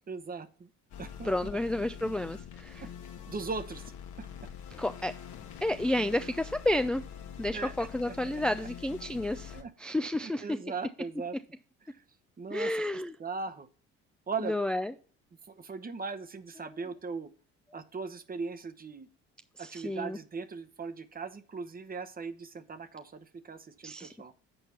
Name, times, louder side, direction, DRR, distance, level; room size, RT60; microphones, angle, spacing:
voice 1, 0.1-0.7 1.0-1.9 3.3-3.8 4.2-4.3 7.5-8.4 9.5-9.7 10.2-11.4 11.9-12.0 12.4-12.7 13.2-13.7 14.3-14.6 15.4-17.3 17.7-19.1 19.6-24.3, right 4 dB, 30° right, 12 dB, 0.9 m, -39 dB
sound 1, 0.9-9.6, left 8 dB, 65° left, 1.2 m, -45 dB
voice 2, 1.2-2.8 4.8-5.1 5.6-7.0 7.4-10.6 12.5-13.1 14.4-14.9 19.6-20.2 23.8-24.1, left 1 dB, 5° left, 9 dB, 0.4 m, -31 dB
8.0 x 4.6 x 5.5 m, 0.39 s
supercardioid pair, 75°, 31 cm